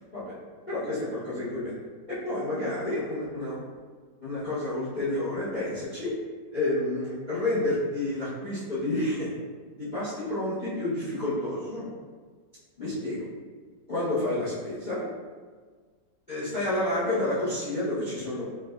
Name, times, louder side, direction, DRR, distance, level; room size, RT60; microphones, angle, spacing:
voice 1, 0.7-1.7 2.1-3.6 4.2-6.1 6.5-9.3 9.7-11.9 12.8-13.2 13.9-15.1 16.3-18.4, left 1 dB, 65° left, -11 dB, 0.4 m, -29 dB
4.6 x 2.2 x 2.3 m, 1.5 s
omnidirectional pair, 2.0 m